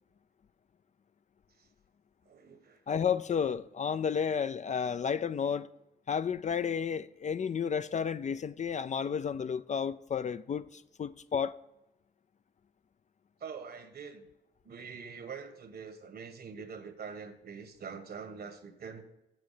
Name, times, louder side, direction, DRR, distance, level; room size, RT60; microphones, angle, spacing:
voice 1, 2.3-2.8 13.4-14.3 14.6-19.0, right 6 dB, 55° right, 1.3 m, -44 dB
voice 2, 2.9-5.7 6.1-11.6, left 7 dB, 40° left, 0.4 m, -32 dB
7.9 x 7.0 x 6.7 m
cardioid pair, 75°, 19 cm